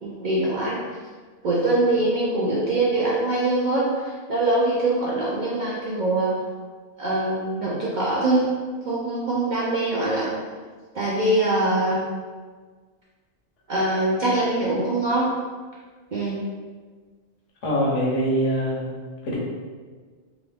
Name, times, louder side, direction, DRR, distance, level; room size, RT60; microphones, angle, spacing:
voice 1, 0.0-0.8 1.4-6.4 7.0-8.5 8.8-10.3 10.9-12.0 13.7-15.3 16.1-16.4, right 2 dB, 55° right, -7 dB, 0.5 m, -23 dB
voice 2, 17.6-18.9 19.2-19.4, equal, 75° left, -4 dB, 1.1 m, -23 dB
2.9 x 2.5 x 3.3 m, 1.5 s
omnidirectional pair, 1.3 m